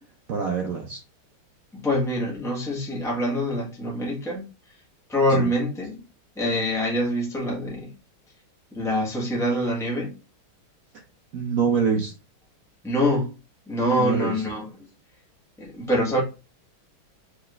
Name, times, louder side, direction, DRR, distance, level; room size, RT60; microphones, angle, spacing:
voice 1, 0.3-1.0 5.4-5.5 11.3-12.1 14.0-14.3, right 6 dB, 65° right, 0.8 m, -25 dB
voice 2, 1.7-4.5 5.1-6.0 6.4-7.9 8.7-10.1 12.8-13.3 13.7-14.9 15.6-16.2, equal, ahead, 1.2 m, -25 dB
4.9 x 3.4 x 2.4 m
omnidirectional pair, 2.3 m